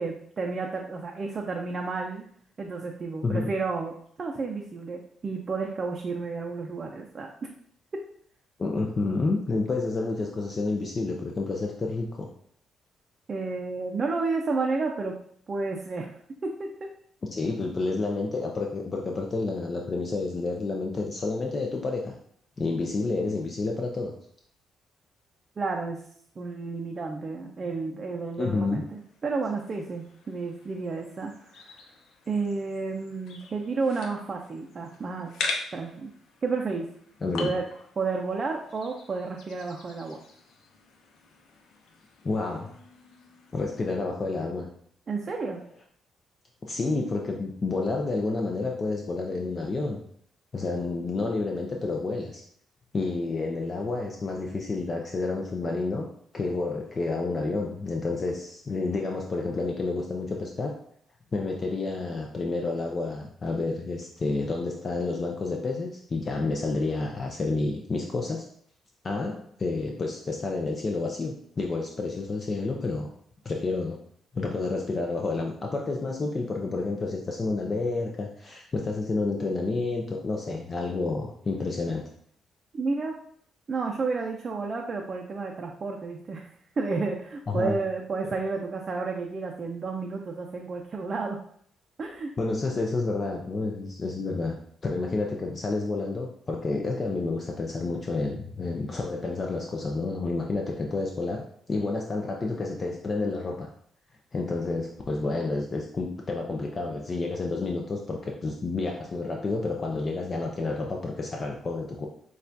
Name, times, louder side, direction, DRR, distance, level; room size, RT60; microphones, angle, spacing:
voice 1, 0.0-2.2 2.6-7.5 13.3-15.2 15.5-16.1 16.4-16.9 25.6-26.0 26.4-31.8 32.3-35.3 35.7-36.1 36.4-36.9 37.4-37.7 38.0-40.2 45.1-45.6 82.7-83.2 83.7-86.5 86.8-91.4 92.0-92.3, right 4 dB, 40° right, 1 dB, 0.5 m, -31 dB
voice 2, 8.6-12.3 17.3-22.2 22.6-24.1 28.4-28.8 37.2-37.5 42.2-42.7 43.5-44.7 46.6-50.0 50.5-52.4 52.9-56.1 56.3-60.8 61.3-68.4 69.0-73.1 73.4-74.0 74.3-82.0 87.5-87.8 92.4-94.6 94.8-103.7 104.3-112.1, left 3 dB, 35° left, 1 dB, 0.5 m, -29 dB
sound 1, 28.8-44.0, left 4 dB, 75° left, 0.7 m, -42 dB
6.5 x 2.4 x 2.7 m, 0.65 s
cardioid pair, 90°, 0 cm